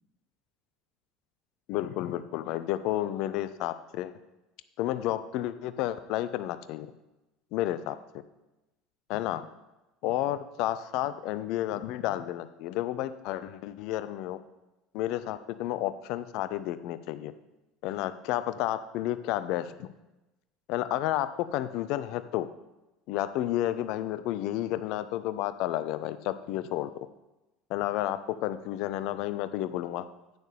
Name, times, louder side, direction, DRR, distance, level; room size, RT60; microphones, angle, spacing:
voice 1, 1.7-4.1 4.8-6.9 7.5-8.0 9.1-9.5 10.0-14.4 14.9-17.3 17.8-19.9 20.7-22.5 23.1-26.9 27.7-30.1, left 13 dB, 55° left, 13 dB, 0.5 m, -31 dB
10.5 x 8.6 x 3.3 m, 1.0 s
figure-of-eight pair, 70°, 0 cm